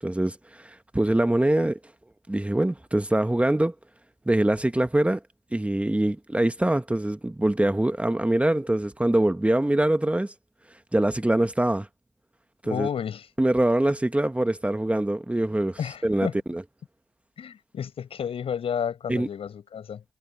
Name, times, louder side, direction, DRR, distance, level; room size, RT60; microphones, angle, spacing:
voice 1, 0.0-1.8 2.3-3.7 4.3-5.2 5.5-10.3 10.9-11.9 12.6-12.9 13.4-16.6 19.1-19.3, right 1 dB, 10° right, 1.6 m, -24 dB
voice 2, 12.6-13.3 15.8-16.4 17.4-20.0, left 8 dB, 60° left, 6.9 m, -31 dB
hypercardioid pair, 40°, 11 cm